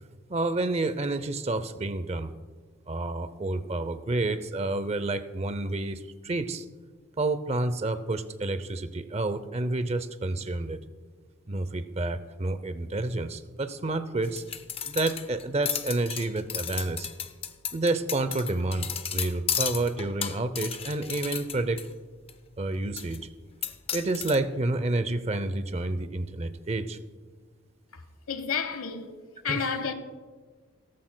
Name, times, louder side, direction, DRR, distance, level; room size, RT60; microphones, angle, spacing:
voice 1, 0.3-2.3 2.9-6.6 7.2-10.8 11.5-14.4 14.8-17.1 17.7-18.9 19.1-21.8 22.6-23.3 23.9-27.0 29.5-29.6, right 2 dB, 30° right, 0.5 m, -29 dB
sound 1, 14.2-21.9 22.3-22.4 23.0-23.2 23.6-24.4, left 8 dB, 25° left, 0.5 m, -33 dB
voice 2, 27.9-29.2 29.4-29.9, left 6 dB, 90° left, 1.1 m, -31 dB
17.0 x 14.0 x 2.2 m
head